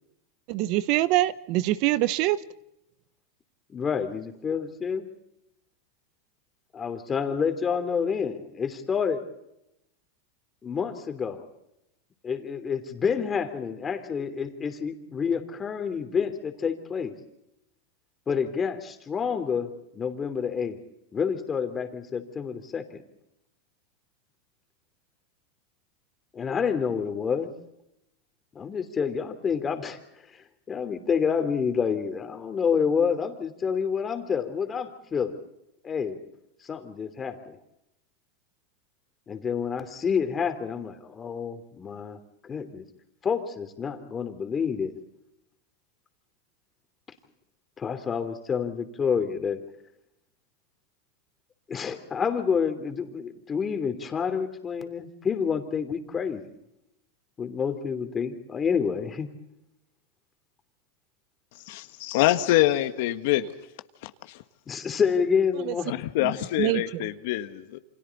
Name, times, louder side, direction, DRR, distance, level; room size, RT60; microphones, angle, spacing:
voice 1, 0.5-2.4 65.6-65.7 66.2-66.3 66.6-67.1, right 16 dB, 50° right, 16 dB, 0.9 m, -24 dB
voice 2, 3.7-5.1 6.7-9.2 10.6-11.4 12.2-17.1 18.3-20.8 21.1-23.0 26.3-27.5 28.5-30.0 30.3-35.3 35.8-36.2 36.6-37.6 39.3-42.8 43.2-44.9 47.8-49.6 51.7-56.4 57.4-59.3 64.7-66.0, left 6 dB, 20° left, 7 dB, 3.1 m, -28 dB
voice 3, 61.7-63.5 64.0-64.4 65.9-67.8, left 15 dB, 65° left, 9 dB, 1.4 m, -25 dB
29.0 x 25.5 x 4.2 m, 0.85 s
supercardioid pair, 125°, 0 cm